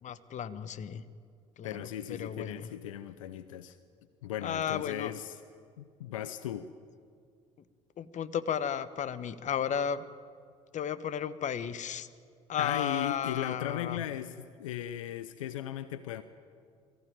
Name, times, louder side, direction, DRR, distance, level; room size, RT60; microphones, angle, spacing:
voice 1, 0.0-1.0 1.6-2.7 4.4-5.1 8.0-10.0 10.7-12.1 12.5-14.0, left 8 dB, 45° left, 15 dB, 1.1 m, -34 dB
voice 2, 1.6-3.8 4.2-5.4 5.8-6.7 12.6-16.2, left 11 dB, 85° left, 14 dB, 0.7 m, -37 dB
23.0 x 15.5 x 9.2 m, 2.2 s
hypercardioid pair, 60°, 17 cm